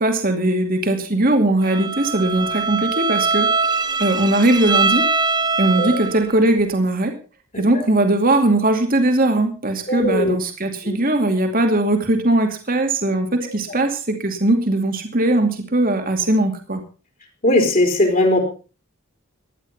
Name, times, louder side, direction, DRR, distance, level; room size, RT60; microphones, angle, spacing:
voice 1, 0.0-3.5 4.0-5.1 5.6-7.1 7.6-16.8, right 1 dB, 40° right, 5 dB, 2.5 m, -19 dB
Bowed string instrument, 1.6-6.3, right 4 dB, 20° right, 1.2 m, -22 dB
voice 2, 9.9-10.4 10.8-11.0 13.7-13.8 17.4-18.4, left 1 dB, 40° left, 4 dB, 4.0 m, -18 dB
16.5 x 11.0 x 5.6 m, 0.36 s
head